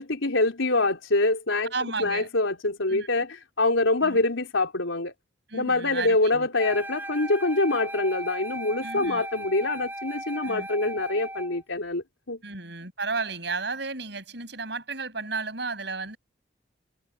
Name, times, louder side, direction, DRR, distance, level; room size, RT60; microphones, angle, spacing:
voice 1, 0.0-1.7 2.0-5.1 5.5-12.4, left 2 dB, 90° left, 4.2 m, -25 dB
voice 2, 1.7-2.3 2.9-3.1 4.0-4.2 5.5-6.5 8.8-9.3 10.4-10.7 12.4-16.2, right 4 dB, 60° right, 7.4 m, -33 dB
Wind instrument woodwind instrument, 6.6-11.6, right 1 dB, 10° right, 6.4 m, -37 dB
head